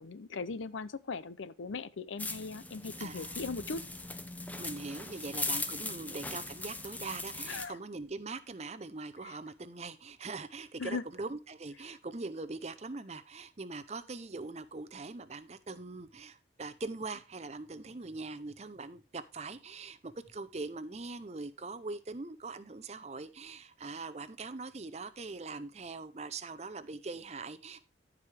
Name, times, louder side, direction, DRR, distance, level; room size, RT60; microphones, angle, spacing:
voice 1, 0.0-3.8 5.8-6.0 7.5-7.8 9.2-9.3 10.8-11.0, left 4 dB, 90° left, 0.6 m, -39 dB
sound 1, 2.2-7.7, left 2 dB, 10° left, 0.6 m, -39 dB
voice 2, 3.0-3.4 4.6-27.8, right 3 dB, 35° right, 0.6 m, -42 dB
14.5 x 4.9 x 3.4 m
head